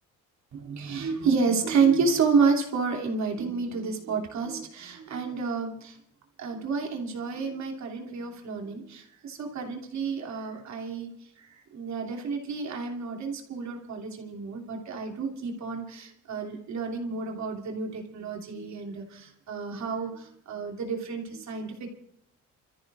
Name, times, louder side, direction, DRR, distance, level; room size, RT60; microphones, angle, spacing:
voice 1, 0.5-6.0 6.4-11.1 11.4-21.9, right 5 dB, 65° right, 1 dB, 2.9 m, -30 dB
29.0 x 14.0 x 2.6 m, 0.69 s
cardioid pair, 90°, 30 cm